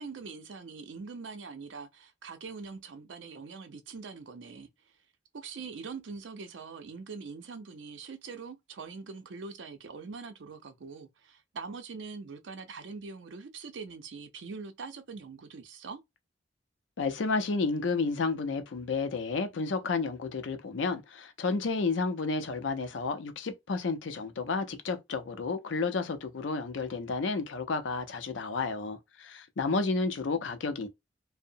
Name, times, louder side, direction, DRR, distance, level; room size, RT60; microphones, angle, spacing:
voice 1, 0.0-4.7 5.3-16.0, right 4 dB, 80° right, 0.5 m, -43 dB
voice 2, 17.0-30.9, left 4 dB, 80° left, 0.5 m, -31 dB
2.7 x 2.0 x 2.6 m
head